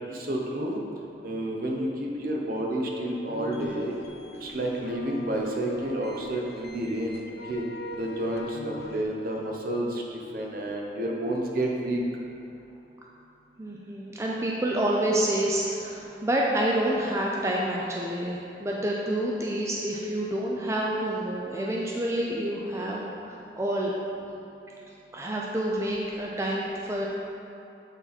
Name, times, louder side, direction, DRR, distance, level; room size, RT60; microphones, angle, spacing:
voice 1, 0.1-0.8 1.2-3.9 4.4-7.2 7.5-7.6 7.9-12.0, right 1 dB, 55° right, -1 dB, 0.9 m, -30 dB
sound 1, 3.3-9.0, equal, 60° left, 0.6 m, -42 dB
voice 2, 13.6-23.9 25.1-27.1, right 1 dB, 15° right, -3 dB, 0.4 m, -28 dB
8.1 x 4.2 x 4.2 m, 2.9 s
head